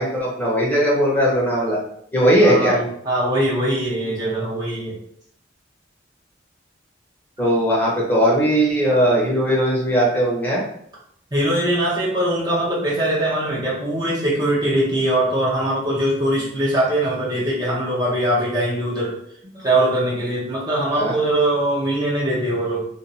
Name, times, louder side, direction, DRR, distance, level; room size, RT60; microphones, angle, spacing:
voice 1, 0.0-1.8 2.1-2.8 7.4-10.6 20.9-21.1, equal, 10° left, -4 dB, 0.9 m, -18 dB
voice 2, 2.4-5.0 11.3-19.2 19.5-22.8, right 1 dB, 20° right, -6 dB, 0.8 m, -21 dB
2.6 x 2.5 x 4.1 m, 0.70 s
head